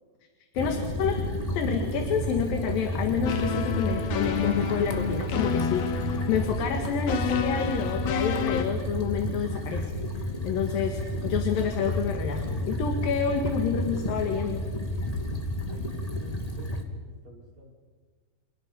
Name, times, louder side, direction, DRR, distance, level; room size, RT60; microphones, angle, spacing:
voice 1, 0.5-1.2 1.5-9.9 10.2-14.6 15.0-15.2, left 6 dB, 70° left, 4 dB, 3.5 m, -29 dB
sound 1, 0.5-16.8, left 1 dB, 15° left, 1.8 m, -31 dB
sound 2, 3.2-8.6, left 7 dB, 85° left, 3.8 m, -30 dB
voice 2, 15.7-17.7, left 2 dB, 60° right, -2 dB, 7.2 m, -49 dB
29.5 x 29.0 x 5.5 m, 1.5 s
omnidirectional pair, 4.4 m